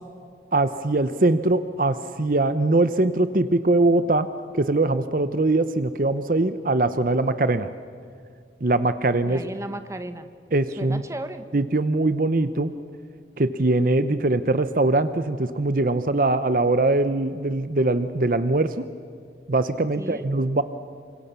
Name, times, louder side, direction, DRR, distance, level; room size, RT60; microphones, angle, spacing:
voice 1, 0.5-4.3 4.5-7.7 8.6-9.4 10.5-11.0 11.5-12.7 13.4-18.8 19.5-20.6, right 2 dB, 50° right, 12 dB, 0.8 m, -22 dB
voice 2, 9.2-10.3 10.8-11.5 20.0-20.2, right 1 dB, 15° right, 9 dB, 1.4 m, -34 dB
28.5 x 26.0 x 6.9 m, 2.3 s
head